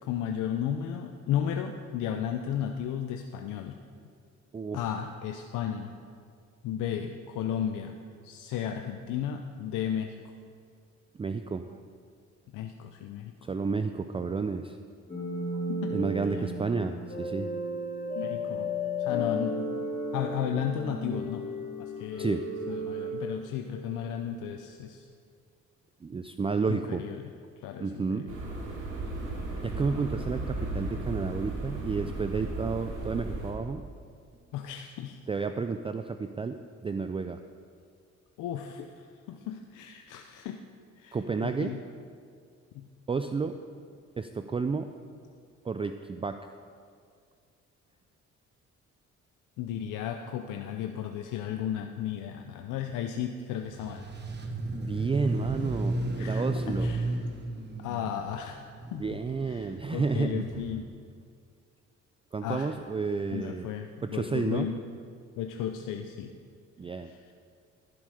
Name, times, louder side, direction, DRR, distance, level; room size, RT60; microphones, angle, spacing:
voice 1, 0.0-3.8 4.7-5.9 6.6-8.0 8.2-10.2 12.5-13.3 15.7-15.9 18.1-18.7 19.0-19.7 20.1-21.5 21.8-22.4 22.7-25.1 26.7-27.3 27.6-28.3 34.5-35.2 38.4-38.9 39.3-40.6 41.0-41.8 42.7-42.9 49.6-54.1 56.2-57.1 57.8-58.6 58.9-59.2 59.5-60.9 62.4-62.7 63.3-64.8 65.4-66.3 67.0-67.3, left 9 dB, 90° left, 4 dB, 0.6 m, -34 dB
voice 2, 11.2-11.8 13.4-14.8 15.9-17.5 22.2-22.4 26.0-27.0 27.8-28.3 29.6-33.8 35.3-37.4 41.1-41.7 43.1-43.6 44.2-44.9 45.6-46.4 54.7-56.9 58.9-60.6 62.3-63.7 64.0-64.7 66.8-67.1, right 4 dB, 20° right, 8 dB, 0.4 m, -31 dB
sound 1, 15.1-24.1, left 1 dB, 25° left, 3.3 m, -34 dB
sound 2, 28.3-33.5, right 2 dB, 80° right, 2.7 m, -35 dB
sound 3, 53.7-60.8, right 2 dB, 35° right, 1.3 m, -34 dB
14.5 x 7.8 x 4.9 m, 2.2 s
cardioid pair, 90°, 30 cm